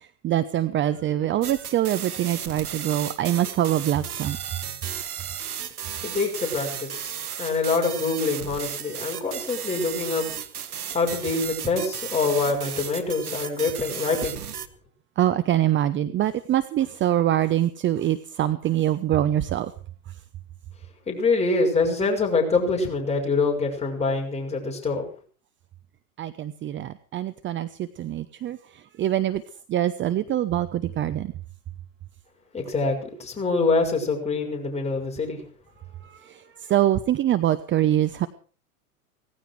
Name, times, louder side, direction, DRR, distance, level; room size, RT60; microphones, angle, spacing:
voice 1, 0.2-4.4 15.2-19.7 26.2-28.6 29.0-29.4 29.7-31.3 36.3-36.4 36.7-38.3, right 12 dB, 25° right, 13 dB, 0.9 m, -24 dB
sound 1, 1.4-14.7, right 9 dB, 85° right, 1.5 m, -34 dB
voice 2, 6.0-10.3 10.9-14.4 21.1-25.0 32.5-35.4, left 3 dB, 15° left, 0 dB, 6.5 m, -25 dB
18.0 x 15.0 x 4.8 m, 0.42 s
hypercardioid pair, 100°, 43 cm